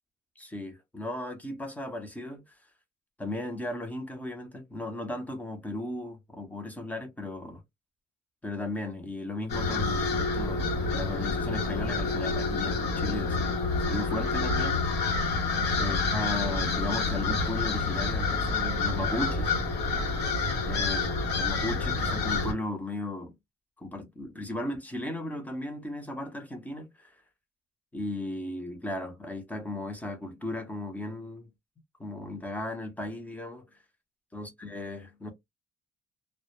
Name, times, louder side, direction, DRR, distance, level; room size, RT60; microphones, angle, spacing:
voice 1, 0.4-2.5 3.2-7.6 8.4-15.4 15.7-19.5 20.6-21.0 21.4-23.4 23.8-27.2 27.9-31.5 32.0-33.6 34.3-35.3, left 2 dB, 10° left, 0.6 m, -36 dB
sound 1, 9.5-22.5, left 3 dB, 75° left, 0.9 m, -28 dB
2.1 x 2.0 x 2.9 m
cardioid pair, 110°, 17 cm